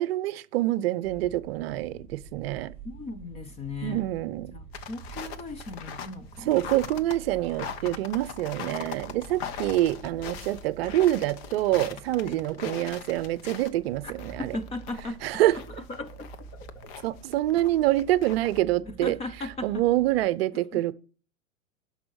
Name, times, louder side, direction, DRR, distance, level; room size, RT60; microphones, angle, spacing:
voice 1, 0.0-2.7 3.8-4.5 6.4-14.6 15.2-15.6 17.0-19.2 19.6-20.9, right 15 dB, 50° right, 0.7 m, -26 dB
sound 1, 1.0-20.3, right 5 dB, 15° right, 5.2 m, -48 dB
voice 2, 2.8-4.0 4.5-6.6 12.2-12.4 14.0-14.1 14.5-15.4 15.8-16.9 18.9-19.9 20.7-20.8, left 2 dB, 15° left, 0.6 m, -38 dB
sound 2, 4.7-18.6, left 7 dB, 50° left, 1.2 m, -41 dB
12.0 x 5.5 x 6.3 m
hypercardioid pair, 135°, 40 cm